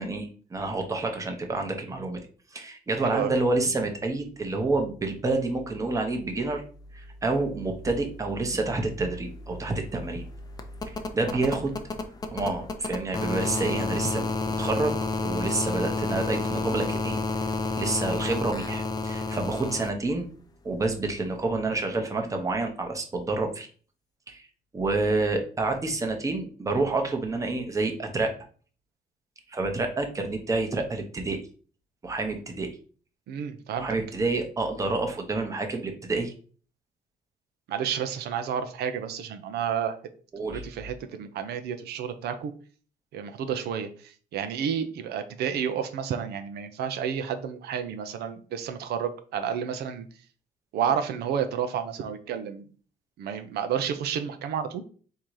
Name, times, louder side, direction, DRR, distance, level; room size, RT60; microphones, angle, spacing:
voice 1, 0.0-2.2 2.5-6.6 6.9-10.2 10.9-11.8 12.3-14.9 15.2-20.3 20.6-23.7 24.3-24.5 24.7-28.3 29.5-31.4 32.0-32.7 33.8-36.3 40.3-40.6, right 3 dB, 20° right, 4 dB, 0.8 m, -28 dB
voice 2, 3.0-3.3 33.3-33.9 37.7-40.0 40.5-42.5 43.1-50.1 50.7-52.7 53.2-54.8, right 8 dB, 90° right, 8 dB, 0.6 m, -30 dB
sound 1, 8.7-8.8 9.0-19.9 21.3-21.4, left 3 dB, 25° left, 0.5 m, -31 dB
3.8 x 2.8 x 4.6 m, 0.41 s
cardioid pair, 140°, 16 cm